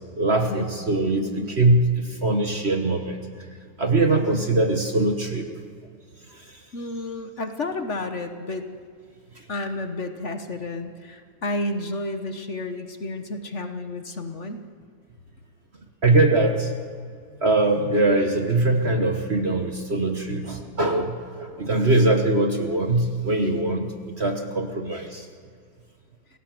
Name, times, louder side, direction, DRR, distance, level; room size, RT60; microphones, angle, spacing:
voice 1, 0.2-3.5 3.8-5.5 6.3-6.6 9.3-9.4 16.0-16.7 17.4-25.3, right 2 dB, 35° right, 4 dB, 1.4 m, -22 dB
voice 2, 6.7-8.7 9.5-14.6, left 2 dB, 45° left, 7 dB, 1.3 m, -31 dB
28.5 x 17.0 x 7.7 m, 2.1 s
omnidirectional pair, 2.1 m